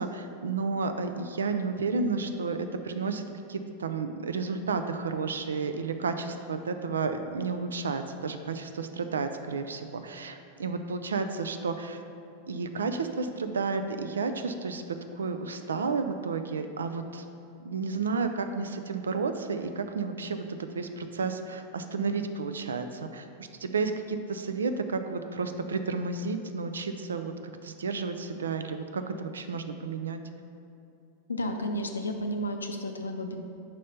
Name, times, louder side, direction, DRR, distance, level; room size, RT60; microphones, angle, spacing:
voice 1, 0.0-2.6 2.8-12.0 12.5-14.8 15.2-17.2 17.6-20.4 20.7-22.9 23.1-23.2 23.6-27.3 27.6-30.2, right 4 dB, 70° right, 8 dB, 0.4 m, -31 dB
voice 2, 31.3-33.4, equal, 75° left, 5 dB, 0.5 m, -32 dB
5.4 x 4.2 x 5.3 m, 2.6 s
figure-of-eight pair, 90°, 0 cm